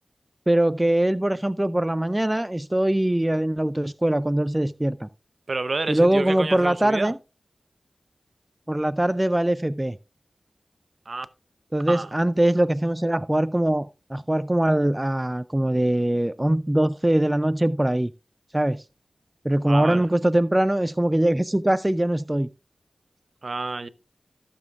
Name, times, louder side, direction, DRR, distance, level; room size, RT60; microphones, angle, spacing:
voice 1, 0.5-5.1 5.9-7.2 8.7-10.0 11.7-18.1 18.5-18.8 19.4-22.5, right 1 dB, 20° right, 0.3 m, -22 dB
voice 2, 5.5-7.1 11.1-11.3 11.9-12.1 19.6-20.1 23.4-23.9, right 3 dB, 55° right, 0.7 m, -29 dB
15.0 x 6.9 x 2.4 m
cardioid pair, 50°, 0 cm